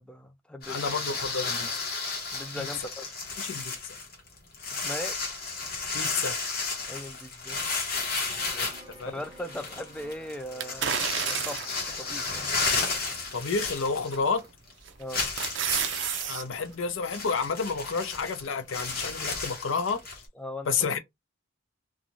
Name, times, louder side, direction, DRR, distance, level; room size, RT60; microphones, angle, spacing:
voice 1, 0.0-0.8 2.3-3.2 4.7-5.2 6.9-7.7 8.6-8.7 9.1-12.5 15.0-15.3 20.4-20.7, left 1 dB, 5° left, 0.3 m, -39 dB
sound 1, 0.6-14.4 14.7-14.8 15.1-20.3, left 4 dB, 50° left, 1.0 m, -33 dB
voice 2, 0.7-1.7 2.6-2.7 3.4-3.9 5.9-6.4 8.5-8.7 9.0-9.1 13.3-14.4 16.3-20.0 20.7-21.0, left 5 dB, 75° left, 0.5 m, -30 dB
sound 2, 8.3-13.4, right 1 dB, 25° right, 0.7 m, -53 dB
sound 3, 10.6-11.8 12.4-12.5 14.1-14.5 14.9-16.4 16.8-16.9, right 9 dB, 60° right, 0.4 m, -30 dB
2.6 x 2.3 x 2.9 m
head